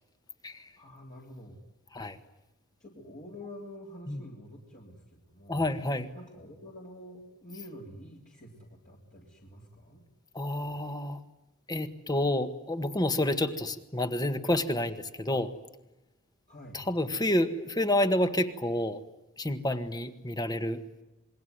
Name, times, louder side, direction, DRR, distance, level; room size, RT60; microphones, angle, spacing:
voice 1, 0.8-1.6 2.8-5.7 6.1-10.0 16.5-16.8, left 1 dB, 40° left, -2 dB, 3.5 m, -47 dB
voice 2, 5.5-6.1 10.3-11.2 11.7-15.5 16.7-19.0 19.4-20.8, left 1 dB, 20° left, 9 dB, 1.6 m, -29 dB
27.5 x 22.0 x 9.5 m, 0.95 s
head